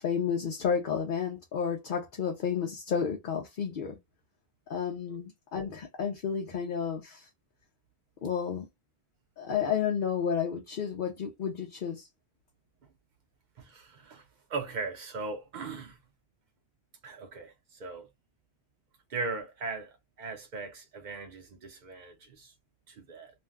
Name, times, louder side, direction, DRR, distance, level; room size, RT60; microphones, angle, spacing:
voice 1, 0.0-4.0 4.7-7.3 8.2-8.7 9.4-12.1, left 7 dB, 55° left, 0.8 m, -31 dB
voice 2, 13.6-14.2 14.5-16.0 17.0-17.5 17.8-18.1 19.1-22.5 22.9-23.3, right 4 dB, 50° right, 0.7 m, -38 dB
2.6 x 2.2 x 3.4 m
omnidirectional pair, 1.1 m